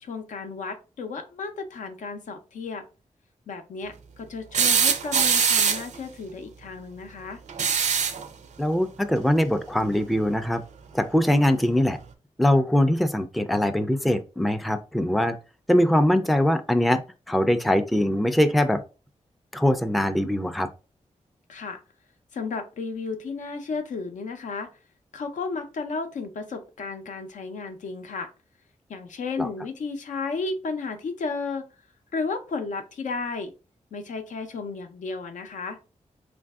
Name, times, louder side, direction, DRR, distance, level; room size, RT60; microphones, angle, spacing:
voice 1, 0.0-2.9 3.5-7.4 21.5-21.8 22.3-24.7 25.1-28.3 28.9-31.7 32.1-33.5 33.9-35.8, left 4 dB, 80° left, 0.6 m, -33 dB
sound 1, 4.5-6.0 7.5-8.3 9.9-10.0 11.5-11.6, right 6 dB, 70° right, 0.4 m, -22 dB
voice 2, 8.6-10.6 10.9-12.0 12.4-15.4 15.7-17.0 17.3-18.8 19.5-20.7 29.4-29.5, left 1 dB, ahead, 0.3 m, -22 dB
3.2 x 2.5 x 2.3 m
cardioid pair, 65°, 13 cm